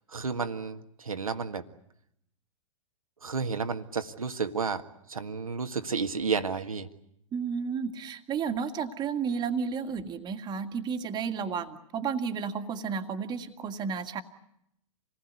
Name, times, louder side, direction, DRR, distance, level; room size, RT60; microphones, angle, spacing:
voice 1, 0.1-1.6 3.2-4.8 5.1-6.9, right 5 dB, 85° right, 8 dB, 1.8 m, -31 dB
voice 2, 7.3-14.2, right 6 dB, 25° right, 7 dB, 2.0 m, -32 dB
27.5 x 19.5 x 9.6 m, 0.78 s
figure-of-eight pair, 110°, 18 cm